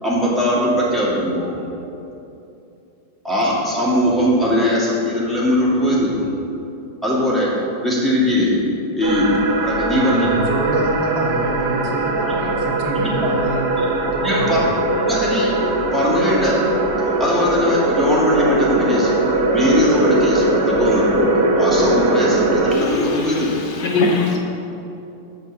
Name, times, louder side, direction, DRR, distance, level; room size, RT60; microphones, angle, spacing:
voice 1, 0.0-1.5 3.2-6.2 7.0-8.6 9.0-10.3 12.3-12.4 12.9-13.5 13.8-13.9 14.2-14.6 14.9-15.5 15.9-16.6 17.2-19.2 19.5-21.3 21.6-23.5, left 1 dB, ahead, -8 dB, 2.0 m, -20 dB
sound 1, 9.0-22.8, right 2 dB, 70° right, 1.4 m, -20 dB
voice 2, 9.9-13.7 14.1-14.7, right 2 dB, 90° right, -3 dB, 2.0 m, -25 dB
voice 3, 22.7-24.4, left 3 dB, 75° left, 0 dB, 1.8 m, -22 dB
7.5 x 5.4 x 7.2 m, 2.8 s
omnidirectional pair, 1.9 m